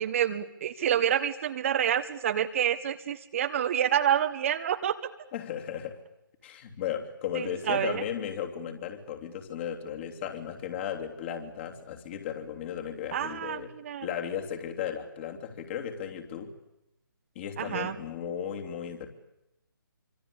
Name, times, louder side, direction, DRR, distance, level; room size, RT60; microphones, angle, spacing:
voice 1, 0.0-4.9 7.3-8.0 13.1-14.1 17.6-18.0, right 10 dB, 35° right, 10 dB, 1.2 m, -28 dB
voice 2, 5.3-6.0 6.4-13.7 14.0-16.5 17.3-19.1, left 9 dB, 30° left, 4 dB, 3.2 m, -35 dB
26.0 x 25.0 x 8.7 m, 0.90 s
figure-of-eight pair, 145°, 12 cm